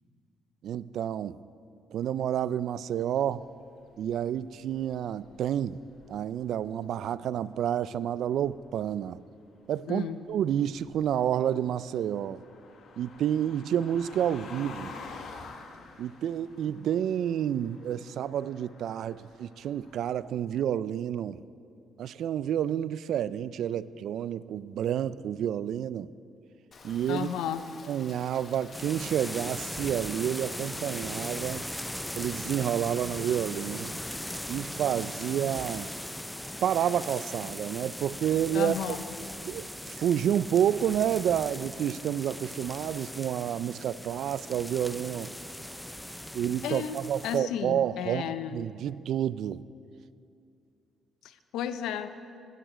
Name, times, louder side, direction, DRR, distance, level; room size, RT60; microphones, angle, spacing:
voice 1, 0.6-1.4 1.9-3.5 4.0-5.8 6.1-9.2 9.7-12.4 13.0-15.0 16.0-21.4 22.0-26.1 26.8-27.3 27.9-31.6 32.2-33.9 34.5-35.9 36.6-38.7 39.5-45.3 46.3-49.6, right 10 dB, 75° right, 18 dB, 0.3 m, -29 dB
sound 1, 3.2-4.4 4.7-6.9 8.3-8.9 10.1-20.2, left 4 dB, 70° left, 1.2 m, -49 dB
voice 2, 9.9-10.2 27.1-27.6 38.5-39.0 46.6-48.6 51.2-52.1, left 9 dB, 90° left, 11 dB, 0.6 m, -33 dB
Rain, 26.7-36.2, left 4 dB, 45° left, 1.1 m, -50 dB
sound 2, 28.7-47.4, equal, 5° left, 0.5 m, -39 dB
15.0 x 9.1 x 4.9 m, 2.4 s
cardioid pair, 90°, 0 cm